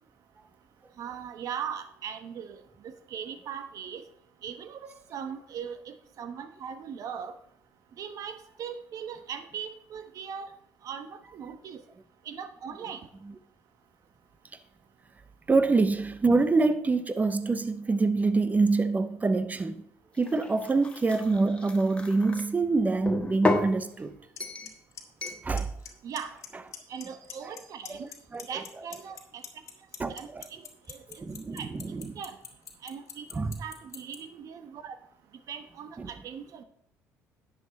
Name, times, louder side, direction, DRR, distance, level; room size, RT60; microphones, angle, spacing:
voice 1, 1.0-4.0 4.4-7.3 8.0-10.5 10.8-11.8 12.2-13.0 26.0-26.3 26.9-28.1 28.5-29.4 30.1-30.6 30.9-31.3 31.5-32.4 32.8-35.0 35.5-36.6, right 7 dB, 60° right, 1.2 m, -39 dB
voice 2, 15.5-19.8 20.2-24.2 25.4-25.7 27.4-27.5 27.9-28.6 30.0-30.4 31.2-32.2 33.3-33.5 36.0-36.1, right 3 dB, 25° right, 0.9 m, -26 dB
sound 1, 20.2-22.4 23.1-23.7 24.4-24.7 25.2-25.4, left 2 dB, 15° left, 1.6 m, -31 dB
Clock, 24.4-24.5 24.7-25.0 25.3-25.9 26.2-26.5 26.7-27.6 27.9-34.2, left 9 dB, 50° left, 1.8 m, -41 dB
11.0 x 7.6 x 4.1 m
supercardioid pair, 75°, 7 cm